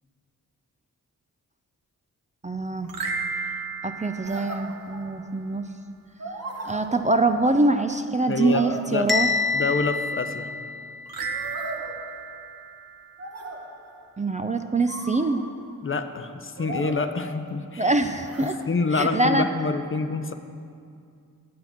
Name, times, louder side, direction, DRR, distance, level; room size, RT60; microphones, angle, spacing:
voice 1, 2.4-2.9 3.8-5.7 6.7-9.3 14.2-15.4 17.8-18.6 18.9-19.5, right 2 dB, 20° right, 7 dB, 0.5 m, -24 dB
sound 1, 2.8-5.3 11.1-13.7, right 5 dB, 80° right, 1.0 m, -34 dB
sound 2, 4.2-5.5 6.2-7.6 8.4-9.9 11.2-12.7 13.2-14.1 14.9-15.8 16.6-17.7 18.2-18.6, right 1 dB, 45° right, 1.2 m, -38 dB
voice 2, 8.3-9.1 9.5-10.5 15.8-17.9 18.4-20.3, left 3 dB, 35° left, 8 dB, 0.7 m, -27 dB
Bell, 9.1-11.1, left 4 dB, ahead, 1.0 m, -26 dB
9.4 x 7.7 x 5.9 m, 2.3 s
cardioid pair, 55°, 35 cm